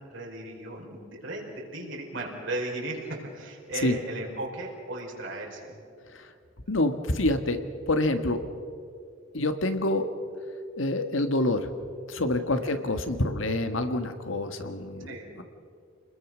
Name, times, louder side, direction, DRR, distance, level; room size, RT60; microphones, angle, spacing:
voice 1, 0.1-5.8 12.5-12.7 15.0-15.3, right 2 dB, 70° right, -1 dB, 4.7 m, -36 dB
voice 2, 6.7-7.6 7.9-8.4 9.3-10.1 10.8-11.7 12.1-15.1, left 1 dB, 80° left, 8 dB, 1.6 m, -27 dB
28.0 x 21.0 x 6.3 m, 2.4 s
head